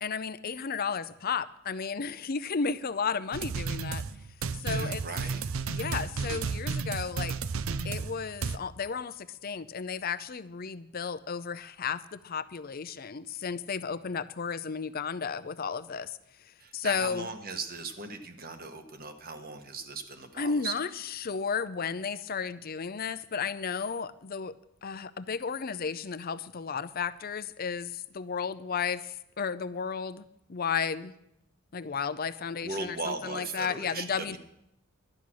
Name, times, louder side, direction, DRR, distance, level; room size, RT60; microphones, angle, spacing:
voice 1, 0.0-4.0 4.6-5.0 5.4-7.4 7.8-16.2 16.7-17.3 20.3-24.5 24.8-30.2 30.5-31.1 31.7-34.4, left 6 dB, 45° left, 14 dB, 0.5 m, -33 dB
sound 1, 3.3-8.6, right 5 dB, 75° right, 0.5 m, -33 dB
voice 2, 4.6-5.6 16.6-20.7 32.6-34.4, right 3 dB, 45° right, 7 dB, 1.2 m, -38 dB
12.0 x 10.0 x 6.2 m, 0.80 s
head